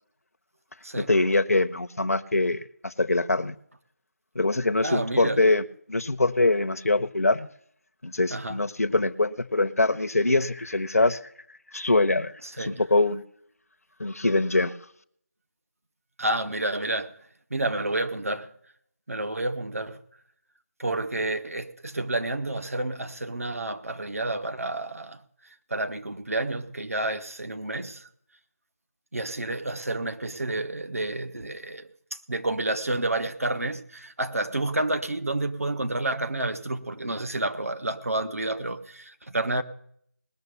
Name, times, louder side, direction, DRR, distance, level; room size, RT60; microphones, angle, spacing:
voice 1, 1.0-3.5 4.3-5.6 5.9-7.5 8.0-11.2 11.7-13.2 14.0-14.8, left 2 dB, 60° left, 0.8 m, -23 dB
voice 2, 4.8-5.4 8.3-8.6 12.4-12.8 16.2-17.1 17.5-18.5 19.1-20.0 20.8-25.2 25.7-28.1 29.1-39.6, right 2 dB, 60° right, 1.4 m, -30 dB
19.5 x 6.7 x 6.8 m
figure-of-eight pair, 165°, 9 cm